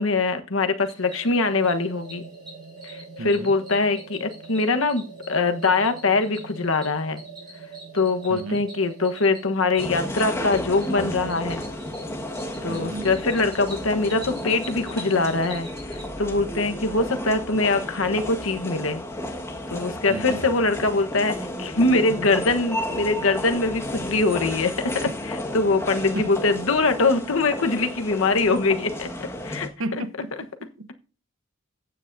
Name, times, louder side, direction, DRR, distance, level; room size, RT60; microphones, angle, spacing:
voice 1, 0.0-2.3 2.8-7.2 7.9-11.6 12.6-19.0 19.7-29.1 29.4-29.7, left 3 dB, 70° left, 1.2 m, -23 dB
Cricket, 0.8-16.0, equal, 25° right, 6.3 m, -46 dB
sound 1, 1.0-20.6, right 4 dB, 85° right, 1.6 m, -46 dB
voice 2, 3.2-3.5 8.3-8.7 12.7-13.2 20.1-20.5 26.1-26.3 29.8-30.9, right 2 dB, 70° right, 1.0 m, -33 dB
sound 2, 9.8-29.7, left 1 dB, 15° left, 1.6 m, -33 dB
15.0 x 9.1 x 2.7 m
head